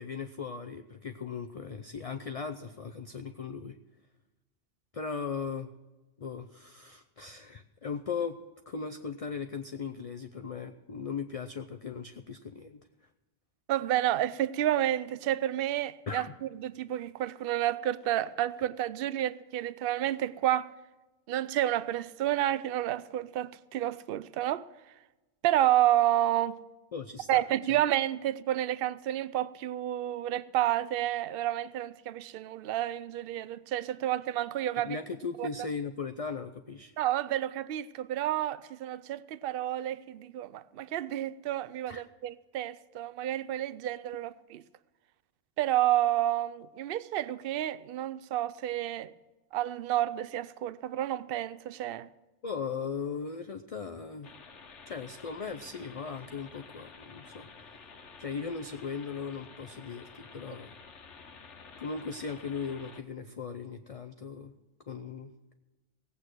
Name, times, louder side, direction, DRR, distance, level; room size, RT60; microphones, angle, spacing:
voice 1, 0.0-3.8 4.9-5.7 6.2-8.4 8.7-12.8 16.1-16.3 26.9-27.4 27.7-27.8 34.7-36.9 41.9-42.0 52.4-54.3 54.9-57.5 58.2-60.7 61.8-64.5 64.9-65.3, left 5 dB, 40° left, 0.5 m, -38 dB
voice 2, 13.7-20.7 21.3-24.6 25.4-26.6 27.3-35.0 35.4-35.5 37.0-44.6 45.6-49.1 49.5-52.1, right 13 dB, 60° right, 0.7 m, -30 dB
sound 1, 54.2-63.0, left 5 dB, 75° left, 1.5 m, -51 dB
18.0 x 8.4 x 6.1 m
omnidirectional pair, 1.2 m